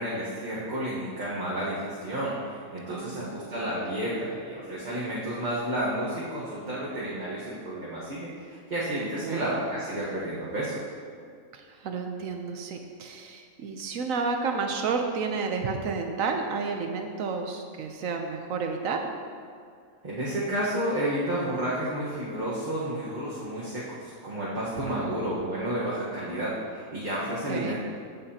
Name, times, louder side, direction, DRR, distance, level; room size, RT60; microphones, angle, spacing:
voice 1, 0.0-10.8 20.0-27.7, right 1 dB, 35° right, -8 dB, 1.4 m, -31 dB
voice 2, 2.9-3.3 6.6-6.9 9.2-9.4 11.5-19.0 24.8-25.2 27.3-27.7, right 4 dB, 75° right, 4 dB, 1.0 m, -31 dB
14.5 x 5.7 x 2.8 m, 2.2 s
omnidirectional pair, 1.5 m